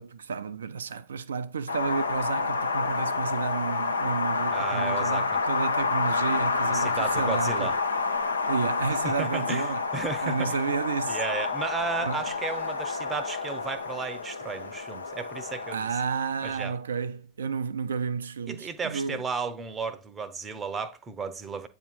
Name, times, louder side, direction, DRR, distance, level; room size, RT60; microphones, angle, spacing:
voice 1, 0.0-7.7 8.5-9.8 10.2-11.2 12.0-12.2 15.7-19.2, right 5 dB, 70° right, 0.5 m, -31 dB
Wind, 1.7-15.7, left 4 dB, 75° left, 0.7 m, -29 dB
voice 2, 4.5-5.4 6.7-7.7 9.0-10.6 11.1-15.9 16.4-16.8 18.5-21.7, right 5 dB, 20° right, 0.7 m, -34 dB
8.5 x 2.9 x 4.0 m
figure-of-eight pair, 90°, 0 cm